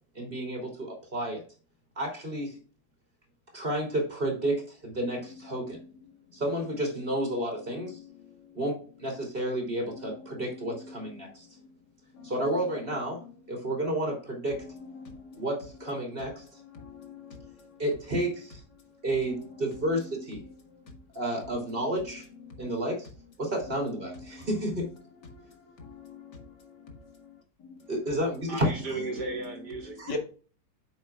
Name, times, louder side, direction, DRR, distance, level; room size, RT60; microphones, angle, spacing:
voice 1, 0.1-1.4 2.0-2.6 3.5-5.8 6.3-8.0 8.5-11.5 12.2-13.2 13.5-14.7 15.4-16.4 17.8-18.6 19.0-20.4 21.1-22.3 22.6-23.1 23.4-24.9 27.9-28.7 30.0-30.2, right 1 dB, 35° right, 0 dB, 3.2 m, -31 dB
voice 2, 15.0-15.4 16.7-17.5 24.4-24.5 25.3-25.5 25.8-26.4 30.1-30.2, left 2 dB, 90° left, 2 dB, 2.5 m, -41 dB
voice 3, 28.5-30.2, right 3 dB, 85° right, 1 dB, 3.2 m, -35 dB
9.4 x 7.2 x 2.4 m, 0.38 s
omnidirectional pair, 1.7 m